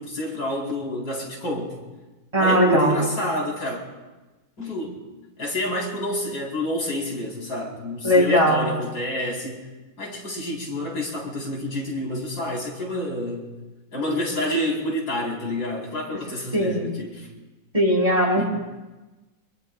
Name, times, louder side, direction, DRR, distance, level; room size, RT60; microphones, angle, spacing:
voice 1, 0.0-1.8 2.4-3.8 4.6-5.0 5.4-9.6 10.0-13.5 13.9-17.3 18.3-18.4, left 1 dB, 75° left, -3 dB, 4.9 m, -28 dB
voice 2, 2.3-3.0 8.0-8.7 16.5-16.9 17.7-18.4, equal, 20° right, -3 dB, 3.6 m, -19 dB
26.0 x 23.0 x 2.4 m, 1.2 s
omnidirectional pair, 1.8 m